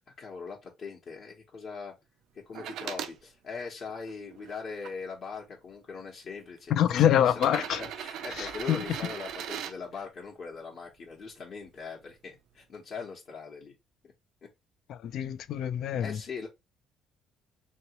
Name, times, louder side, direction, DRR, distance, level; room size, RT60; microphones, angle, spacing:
voice 1, 0.0-1.9 2.5-7.5 8.0-13.8 14.0-14.1 15.9-16.5, left 5 dB, 45° left, 0.9 m, -41 dB
sound 1, 2.5-3.2 3.9-4.9 5.9-6.0 7.3-9.8 11.6-11.7, right 9 dB, 70° right, 0.4 m, -39 dB
voice 2, 6.7-7.8 8.4-8.8 14.9-16.2, left 10 dB, 65° left, 0.4 m, -25 dB
2.9 x 2.8 x 2.9 m
cardioid pair, 115°, 0 cm